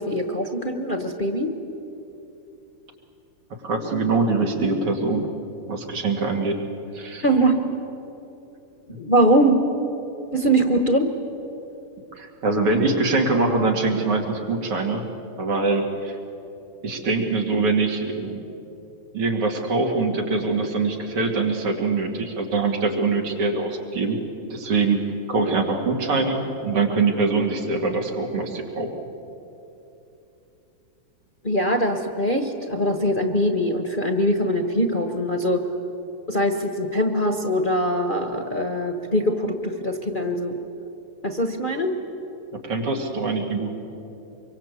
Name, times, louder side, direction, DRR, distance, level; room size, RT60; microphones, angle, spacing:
voice 1, 0.0-1.5 7.2-7.6 8.9-9.6 10.3-11.1 31.4-35.6 36.3-40.6 41.2-41.9, equal, 30° left, 5 dB, 1.1 m, -22 dB
voice 2, 3.6-5.3 5.7-6.6 6.9-7.2 12.2-15.0 15.4-16.2 16.8-18.4 19.1-24.2 24.5-25.0 25.3-28.9 42.6-43.7, right 3 dB, 90° right, 1 dB, 3.4 m, -23 dB
24.5 x 23.5 x 8.3 m, 2.9 s
omnidirectional pair, 2.4 m